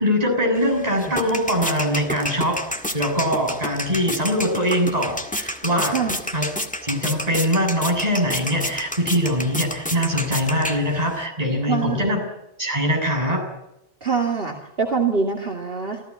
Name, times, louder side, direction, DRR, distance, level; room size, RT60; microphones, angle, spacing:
voice 1, 0.0-6.0 6.3-6.4 6.8-12.2 12.6-13.4, equal, 35° right, 2 dB, 7.4 m, -22 dB
sound 1, 0.6-11.3, equal, 5° left, 1.8 m, -30 dB
voice 2, 11.7-12.1 14.0-16.0, right 5 dB, 60° right, 2 dB, 2.7 m, -24 dB
28.0 x 15.5 x 9.6 m, 0.89 s
omnidirectional pair, 1.1 m